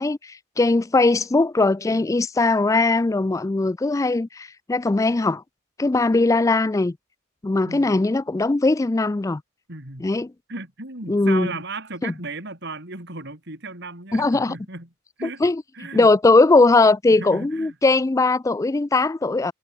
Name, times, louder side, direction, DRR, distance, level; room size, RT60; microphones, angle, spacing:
voice 1, 0.0-5.4 5.8-7.0 7.4-9.4 10.0-10.3 11.1-11.5 12.0-12.1 14.1-14.6 15.4-15.6 15.9-19.5, left 3 dB, 15° left, 0.3 m, -19 dB
voice 2, 7.7-8.0 9.7-10.1 10.5-14.9 15.2-15.4 15.7-16.1 17.1-17.8, right 3 dB, 55° right, 5.4 m, -35 dB
head